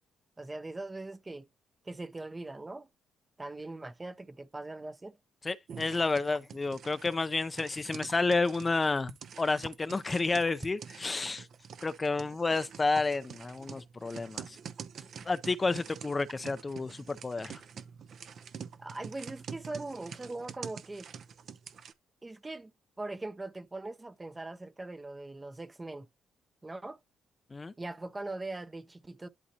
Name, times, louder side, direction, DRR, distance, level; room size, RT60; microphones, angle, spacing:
voice 1, 0.4-1.5 1.8-2.9 3.4-5.2 18.8-21.1 22.2-22.7 23.0-26.1 26.6-27.0 27.8-29.3, right 2 dB, 20° right, 0.7 m, -41 dB
voice 2, 5.4-11.5 11.8-14.6 15.2-17.6 27.5-27.7, left 3 dB, 25° left, 0.5 m, -30 dB
sound 1, 5.7-21.9, right 7 dB, 60° right, 0.7 m, -47 dB
11.5 x 4.0 x 2.8 m
cardioid pair, 90°, 0 cm